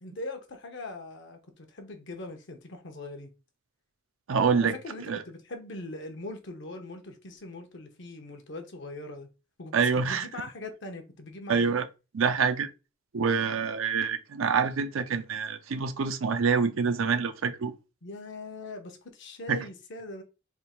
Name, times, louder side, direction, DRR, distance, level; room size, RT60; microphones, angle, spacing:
voice 1, 0.0-3.3 4.6-9.3 9.6-11.7 18.0-20.2, left 2 dB, 60° left, 0.9 m, -41 dB
voice 2, 4.3-4.7 5.1-5.2 9.7-10.3 11.5-11.9 12.1-12.7 13.1-17.7 19.5-19.6, right 5 dB, 70° right, 0.5 m, -26 dB
3.5 x 2.4 x 4.3 m
head